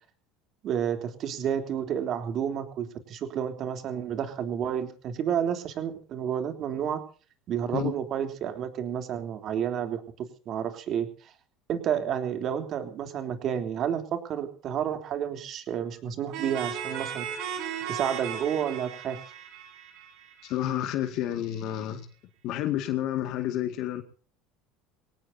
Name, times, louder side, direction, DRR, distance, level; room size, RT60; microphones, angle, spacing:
voice 1, 0.6-7.0 7.5-11.3 11.7-17.3 17.9-19.2, right 9 dB, 45° right, 7 dB, 3.5 m, -30 dB
sound 1, 16.3-20.9, right 8 dB, 60° right, 7.5 m, -36 dB
voice 2, 20.4-22.1 22.4-24.0, left 12 dB, 55° left, 7 dB, 2.1 m, -30 dB
24.0 x 18.5 x 2.8 m, 0.41 s
supercardioid pair, 130°, 0 cm